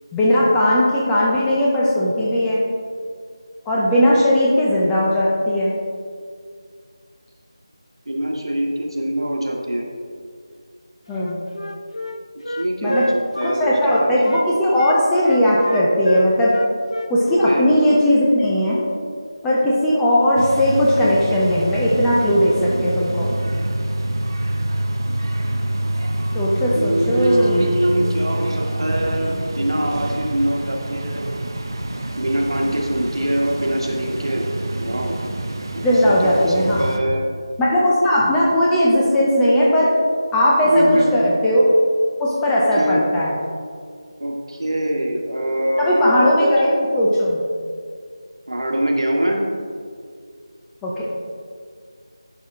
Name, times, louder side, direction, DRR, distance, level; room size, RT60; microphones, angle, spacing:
voice 1, 0.1-2.6 3.7-5.7 11.1-11.4 12.8-13.0 13.4-16.5 17.1-18.8 19.4-23.3 26.3-27.7 35.8-36.9 37.6-39.9 40.3-41.7 42.2-43.3 45.8-47.4 50.8-51.0, equal, 5° left, -6 dB, 0.4 m, -18 dB
voice 2, 8.1-9.9 12.5-14.1 17.3-17.7 26.7-31.2 32.2-34.5 34.8-35.2 35.7-37.3 40.6-41.1 42.8-43.0 44.2-46.5 48.5-49.4, right 1 dB, 60° right, 0 dB, 1.3 m, -23 dB
Wind instrument woodwind instrument, 11.1-14.5 14.8-18.0, equal, 80° left, 0.5 m, -28 dB
sound 1, 20.4-37.0, right 1 dB, 45° right, 0.6 m, -26 dB
10.5 x 4.2 x 3.6 m, 2.1 s
figure-of-eight pair, 165°, 3 cm